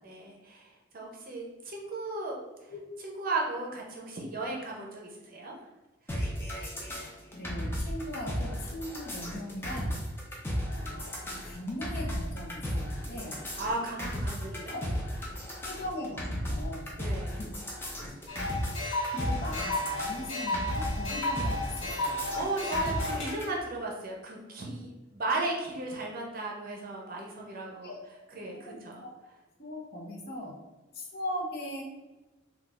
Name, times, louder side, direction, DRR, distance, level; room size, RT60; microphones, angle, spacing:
voice 1, 0.0-2.4 3.0-5.6 13.6-14.8 15.3-15.4 17.0-17.4 22.3-27.9 28.3-29.0, right 2 dB, 45° right, -1 dB, 0.6 m, -35 dB
sound 1, 6.1-23.4, equal, 10° left, 0.5 m, -35 dB
voice 2, 7.3-10.0 10.7-13.4 14.7-14.9 15.6-16.2 16.5-16.9 17.4-17.5 18.0-18.2 19.1-22.2 27.8-28.0 28.5-29.1 29.6-30.6 30.9-31.8, left 1 dB, 50° left, -2 dB, 0.7 m, -39 dB
sound 2, 18.3-23.3, left 1 dB, 85° left, 1.2 m, -33 dB
3.9 x 2.3 x 2.4 m, 1.1 s
head